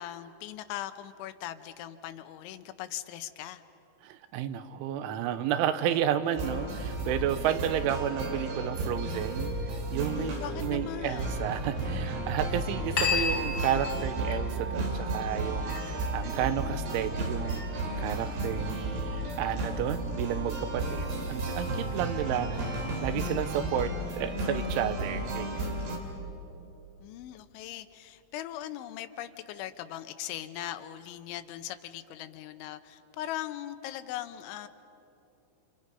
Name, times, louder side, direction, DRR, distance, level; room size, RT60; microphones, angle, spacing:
voice 1, 0.0-3.6 10.1-11.4 22.3-23.1 27.0-34.7, left 12 dB, 85° left, 10 dB, 3.2 m, -40 dB
voice 2, 4.0-10.3 10.6-17.6 18.0-25.7, right 9 dB, 85° right, 10 dB, 3.4 m, -32 dB
sound 1, 6.4-26.0, right 1 dB, 65° right, 4.8 m, -33 dB
sound 2, 13.0-22.0, left 3 dB, 40° left, 1.5 m, -37 dB
29.0 x 28.0 x 5.5 m, 2.9 s
omnidirectional pair, 5.4 m